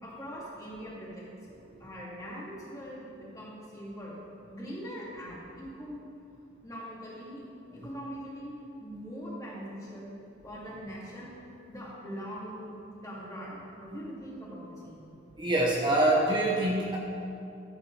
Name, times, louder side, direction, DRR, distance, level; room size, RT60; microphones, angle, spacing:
voice 1, 0.0-1.3 1.8-4.2 4.5-6.1 6.6-7.4 7.7-10.1 10.4-11.3 11.7-15.1, equal, 20° left, -6 dB, 2.3 m, -42 dB
voice 2, 15.4-17.0, right 1 dB, 25° right, -2 dB, 0.8 m, -25 dB
14.0 x 7.6 x 3.2 m, 2.6 s
head